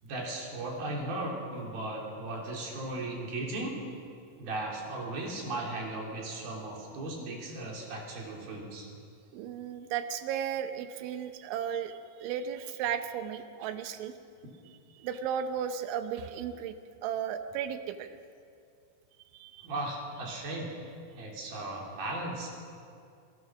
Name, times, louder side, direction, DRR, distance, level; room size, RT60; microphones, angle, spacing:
voice 1, 0.0-3.7 4.4-8.9 19.6-20.7 21.1-22.5, right 2 dB, 55° right, -1 dB, 5.0 m, -36 dB
voice 2, 9.3-14.1 15.0-16.8 17.0-18.1 19.3-19.7, right 8 dB, 85° right, 9 dB, 3.3 m, -35 dB
27.0 x 16.5 x 6.3 m, 2.4 s
omnidirectional pair, 5.3 m